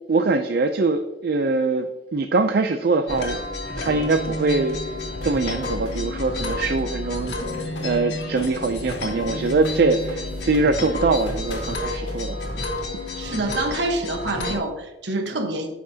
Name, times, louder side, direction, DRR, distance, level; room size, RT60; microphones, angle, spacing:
voice 1, 0.1-3.4 3.8-12.6 15.3-15.5, right 3 dB, 55° right, 7 dB, 0.4 m, -23 dB
sound 1, 3.1-14.6, left 2 dB, 65° left, 1.8 m, -30 dB
sound 2, 4.7-6.8 7.1-12.8, left 1 dB, 80° left, 1.7 m, -41 dB
voice 2, 13.1-15.7, right 2 dB, 70° right, 5 dB, 1.1 m, -26 dB
13.5 x 5.8 x 2.8 m, 1.1 s
head